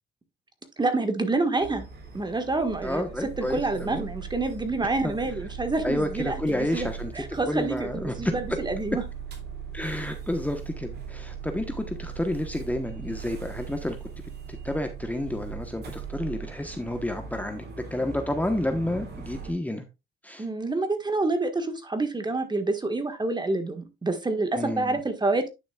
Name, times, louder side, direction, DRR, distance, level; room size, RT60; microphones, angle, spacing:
voice 1, 0.8-1.9 2.1-9.0 20.4-25.5, right 2 dB, 20° right, 1.6 m, -28 dB
sound 1, 1.6-19.5, right 6 dB, 55° right, 2.6 m, -39 dB
voice 2, 2.8-3.6 3.9-4.1 5.8-7.1 7.5-8.3 9.7-14.0 14.6-17.6 17.9-19.8 20.2-20.4 24.5-25.0, left 1 dB, 10° left, 1.1 m, -30 dB
10.5 x 6.2 x 2.4 m
cardioid pair, 90°, 20 cm